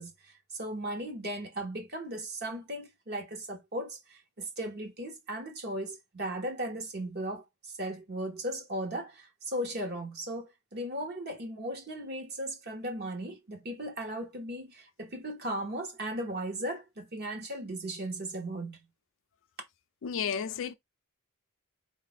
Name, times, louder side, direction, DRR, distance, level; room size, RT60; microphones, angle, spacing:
voice 1, 0.0-18.8, right 1 dB, 50° right, 1.0 m, -37 dB
voice 2, 20.0-20.7, left 7 dB, 60° left, 0.4 m, -32 dB
4.2 x 2.5 x 4.0 m
head